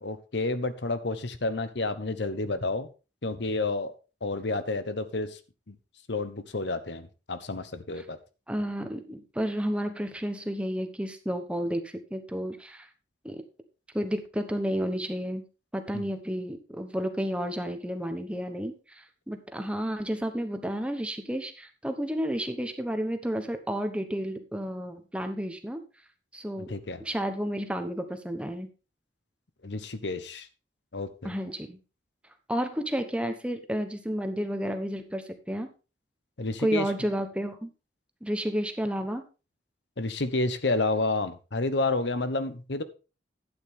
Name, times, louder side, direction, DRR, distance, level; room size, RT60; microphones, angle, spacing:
voice 1, 0.0-2.9 3.2-3.9 4.2-5.4 5.7-5.8 6.1-8.2 15.9-16.1 26.7-27.0 29.6-30.5 30.9-31.3 36.4-36.9 40.0-42.8, left 2 dB, 75° left, 12 dB, 1.0 m, -30 dB
voice 2, 8.5-12.9 13.2-13.4 13.9-15.4 15.7-25.8 26.3-26.7 27.0-28.7 31.2-31.8 32.5-35.7 36.6-37.7 38.2-39.2, equal, 5° right, 7 dB, 1.0 m, -31 dB
12.0 x 9.0 x 3.6 m, 0.32 s
head